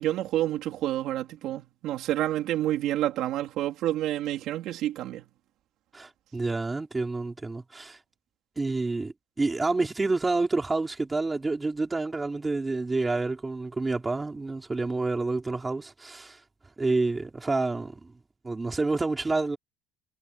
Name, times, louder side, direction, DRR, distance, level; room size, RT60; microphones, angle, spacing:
voice 1, 0.0-5.2, right 13 dB, 50° right, 3.7 m, -29 dB
voice 2, 5.9-8.0 8.6-16.4 16.8-18.1 18.4-19.6, right 3 dB, 10° right, 4.1 m, -28 dB
cardioid pair, 180°, 0 cm